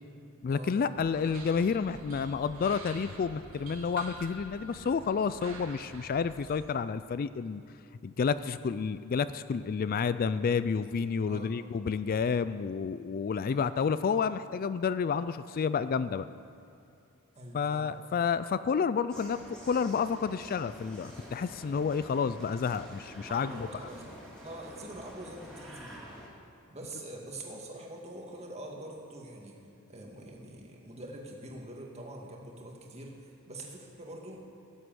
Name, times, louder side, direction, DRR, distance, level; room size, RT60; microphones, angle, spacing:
voice 1, 0.4-7.6 8.0-16.3 17.5-19.4 19.7-23.7, left 6 dB, 45° left, 14 dB, 0.3 m, -30 dB
sound 1, 0.9-6.7, right 3 dB, 85° right, 1.9 m, -47 dB
voice 2, 11.3-11.6 13.4-13.6 17.4-17.9 23.3-24.0 24.4-26.0 26.7-29.6 29.9-34.4, right 1 dB, 30° right, -1 dB, 2.1 m, -44 dB
sound 2, 19.1-26.3, equal, 5° left, 3.1 m, -48 dB
17.0 x 8.0 x 7.7 m, 2.7 s
head